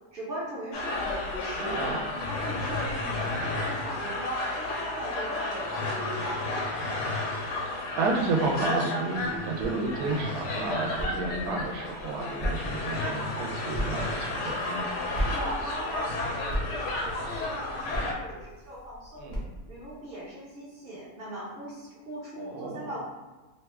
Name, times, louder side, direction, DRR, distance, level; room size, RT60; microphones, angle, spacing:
voice 1, 0.1-1.8 2.1-6.6 15.1-19.3 19.7-23.0, right 1 dB, 45° right, -6 dB, 0.8 m, -38 dB
sound 1, 0.7-18.1, left 2 dB, 85° left, 1.2 m, -32 dB
voice 2, 1.6-2.0 6.8-6.9 7.6-14.9 19.2-19.4 22.4-22.9, right 3 dB, 70° right, 0 dB, 1.0 m, -31 dB
sound 2, 9.1-20.0, equal, 45° left, 0.5 m, -38 dB
2.9 x 2.3 x 3.2 m, 1.2 s
omnidirectional pair, 1.7 m